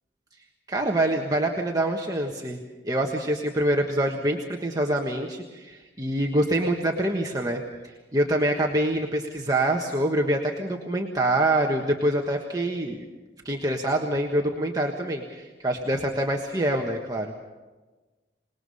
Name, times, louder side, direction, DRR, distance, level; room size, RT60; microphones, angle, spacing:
voice 1, 0.7-2.6 2.8-13.0 13.4-17.3, right 1 dB, 20° right, 1 dB, 1.4 m, -25 dB
27.0 x 20.0 x 5.6 m, 1.2 s
head